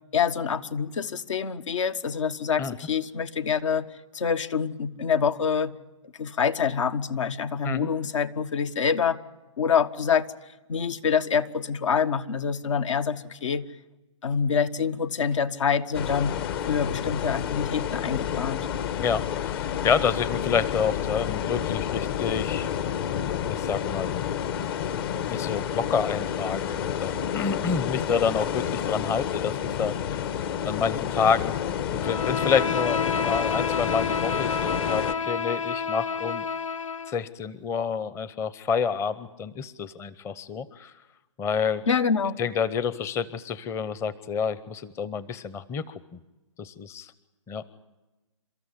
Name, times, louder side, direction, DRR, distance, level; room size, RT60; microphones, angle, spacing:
voice 1, 0.1-3.9 4.1-5.7 6.2-9.2 9.6-10.3 10.7-13.7 14.2-16.4 16.6-18.7 41.9-42.4, left 6 dB, 70° left, 12 dB, 1.5 m, -26 dB
sound 1, 15.9-35.1, left 9 dB, 50° left, 1.4 m, -29 dB
voice 2, 19.0-22.7 23.5-24.1 25.3-30.3 30.6-31.5 31.9-36.4 37.1-40.9 41.4-41.8 42.4-46.0 46.6-47.1 47.5-47.6, left 6 dB, 15° left, 17 dB, 0.8 m, -28 dB
Bowed string instrument, 32.0-37.2, left 5 dB, 85° left, 0.7 m, -29 dB
29.5 x 14.0 x 9.9 m, 1.1 s
hypercardioid pair, 140°, 16 cm